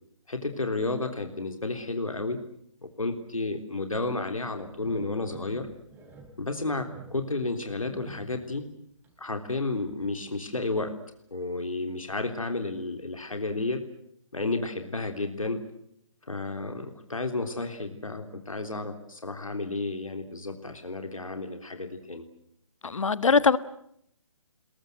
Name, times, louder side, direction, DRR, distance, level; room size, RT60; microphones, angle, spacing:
voice 1, 0.3-2.4 2.8-5.7 6.4-8.6 9.2-10.9 11.3-13.8 14.3-15.6 16.3-22.3, left 2 dB, 85° left, 6 dB, 3.5 m, -32 dB
sound 1, 4.5-8.7 9.0-9.2 9.7-10.4 10.7-10.8 11.2-11.3, right 2 dB, 10° right, 4.0 m, -49 dB
voice 2, 22.8-23.6, left 5 dB, 70° left, 16 dB, 1.4 m, -21 dB
29.5 x 21.5 x 7.8 m, 0.71 s
figure-of-eight pair, 145°, 17 cm